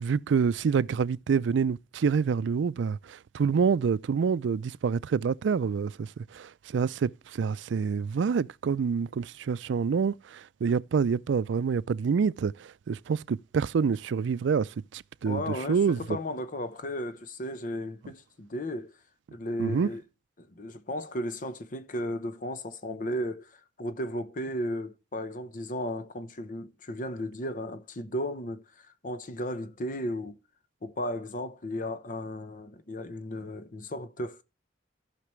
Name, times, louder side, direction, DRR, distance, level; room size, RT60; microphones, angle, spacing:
voice 1, 0.0-16.2 19.6-19.9, right 6 dB, 80° right, 0.4 m, -27 dB
voice 2, 15.3-18.9 19.3-20.0 20.4-30.4 30.8-34.4, left 1 dB, 45° left, 0.8 m, -35 dB
15.5 x 5.9 x 3.1 m
head